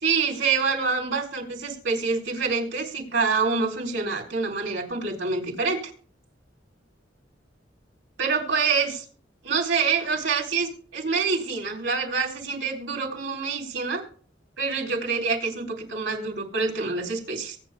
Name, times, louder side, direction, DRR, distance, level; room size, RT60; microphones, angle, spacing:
voice 1, 0.0-5.8 8.2-9.0 9.4-14.0 14.6-17.6, right 4 dB, 80° right, 0 dB, 3.9 m, -26 dB
23.5 x 8.4 x 2.2 m, 0.43 s
head